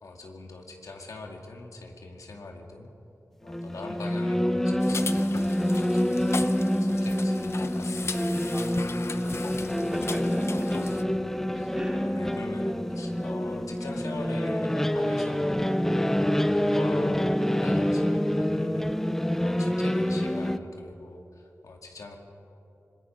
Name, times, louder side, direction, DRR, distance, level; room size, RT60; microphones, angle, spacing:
voice 1, 0.0-2.9 3.4-8.4 10.6-11.2 11.5-11.7 12.0-19.0 19.4-22.2, left 2 dB, 75° left, 2 dB, 2.2 m, -42 dB
sound 1, 3.5-20.6, equal, 5° left, 0.6 m, -26 dB
sound 2, 4.8-11.0, left 4 dB, 50° left, 0.8 m, -38 dB
voice 2, 8.5-9.6 9.9-10.6 11.7-12.0, right 1 dB, 15° right, -2 dB, 3.9 m, -41 dB
25.5 x 21.5 x 5.4 m, 2.9 s
wide cardioid pair, 125°, 6 cm